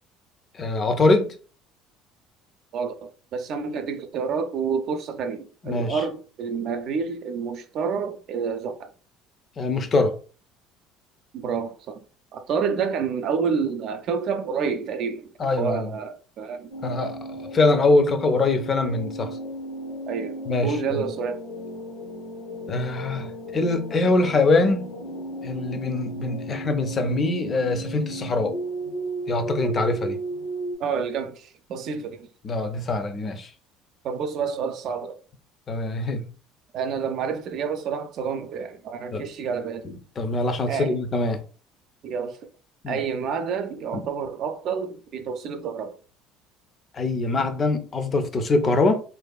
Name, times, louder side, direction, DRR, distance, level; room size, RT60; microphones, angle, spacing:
voice 1, 0.5-1.3 5.6-6.0 9.6-10.2 15.4-15.9 16.8-19.4 20.5-21.0 22.7-24.9 25.4-28.5 29.3-30.2 32.4-33.5 35.7-36.3 39.1-39.2 39.8-41.4 42.8-43.0 43.9-44.0 46.9-49.0, left 2 dB, 40° left, 0.4 m, -23 dB
voice 2, 2.7-8.9 11.3-12.0 12.3-16.7 20.1-21.4 30.8-32.3 34.0-35.2 36.7-39.9 40.7-41.0 42.0-42.4 42.9-46.0, right 6 dB, 60° right, 0.4 m, -29 dB
sound 1, 16.7-30.8, right 1 dB, 80° left, 0.7 m, -35 dB
2.5 x 2.3 x 2.2 m
hypercardioid pair, 75°, 0 cm